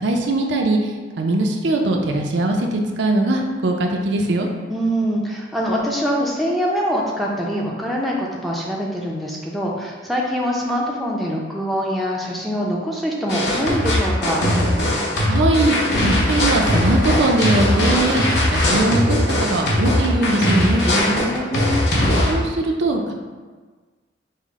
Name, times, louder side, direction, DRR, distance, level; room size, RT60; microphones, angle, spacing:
voice 1, 0.0-0.8 1.2-4.5 15.3-15.7 16.0-18.2 18.5-20.8 22.3-23.1, right 2 dB, 65° right, 2 dB, 0.5 m, -20 dB
voice 2, 4.7-14.5 20.8-21.8, equal, ahead, -3 dB, 0.4 m, -24 dB
sound 1, 13.3-22.3, left 1 dB, 55° left, 0.8 m, -19 dB
5.6 x 2.1 x 3.5 m, 1.4 s
head